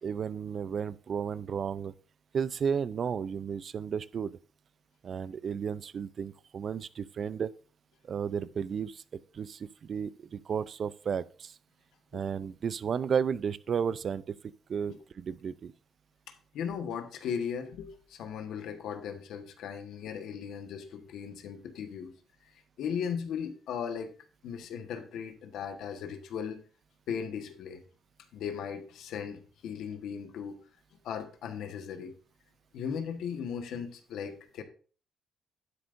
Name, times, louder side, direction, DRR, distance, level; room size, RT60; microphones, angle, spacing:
voice 1, 0.0-1.9 2.3-4.4 5.0-7.5 8.0-9.0 9.3-11.6 12.1-14.3 14.7-15.7, right 7 dB, 55° right, 0.5 m, -33 dB
voice 2, 16.3-22.1 22.4-22.5 22.8-24.1 24.4-26.6 27.1-27.8 28.3-30.6 31.0-32.2 32.7-34.6, left 7 dB, 80° left, 1.3 m, -37 dB
11.5 x 10.0 x 2.6 m
cardioid pair, 90°, 0 cm